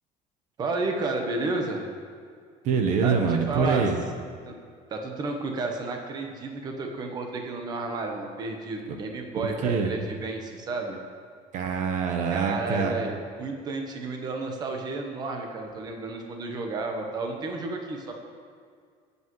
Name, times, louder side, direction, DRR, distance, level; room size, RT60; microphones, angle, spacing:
voice 1, 0.6-1.8 3.0-3.9 4.5-4.6 4.9-11.0 12.3-18.1, right 3 dB, 30° right, 3 dB, 1.1 m, -31 dB
voice 2, 2.6-4.0 9.4-9.9 11.5-13.0, right 5 dB, 60° right, 4 dB, 1.0 m, -25 dB
19.0 x 8.3 x 3.1 m, 2.1 s
cardioid pair, 170°, 14 cm